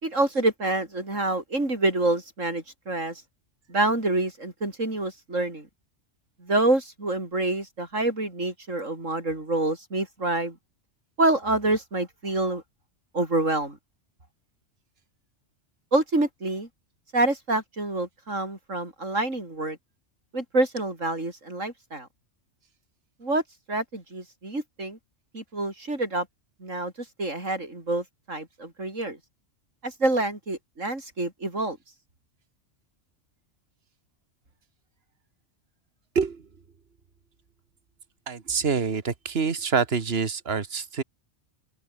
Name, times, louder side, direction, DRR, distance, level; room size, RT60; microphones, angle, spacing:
voice 1, 0.0-3.2 3.7-5.7 6.4-10.6 11.2-12.6 13.1-13.8 15.9-16.7 17.1-19.8 20.3-22.1 23.2-23.4 23.7-25.0 25.3-26.3 26.6-29.2 29.8-31.8, right 2 dB, 85° right, 6.0 m, -27 dB
voice 2, 38.3-41.0, right 5 dB, 55° right, 1.9 m, -26 dB
open air
omnidirectional pair, 1.3 m